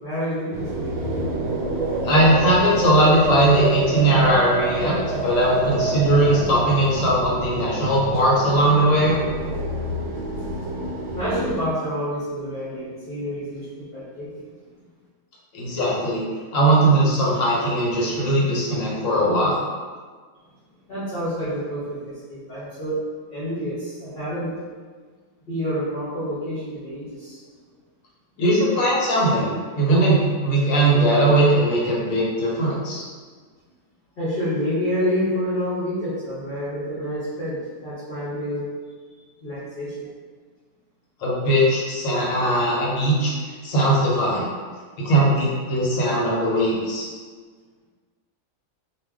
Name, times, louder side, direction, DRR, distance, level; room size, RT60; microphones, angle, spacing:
voice 1, 0.0-1.0 9.8-10.5 11.1-14.5 20.9-23.0 23.3-24.5 25.5-27.4 34.2-38.7 39.4-40.1, equal, 45° left, -12 dB, 0.9 m, -28 dB
sound 1, 0.5-11.6, right 2 dB, 85° right, 1.1 m, -27 dB
voice 2, 2.0-9.2 15.5-16.2 16.5-19.6 28.4-29.5 29.7-33.0 41.2-43.3 43.6-44.5 45.0-47.1, right 1 dB, 65° left, -5 dB, 1.1 m, -19 dB
2.4 x 2.4 x 3.5 m, 1.5 s
omnidirectional pair, 1.5 m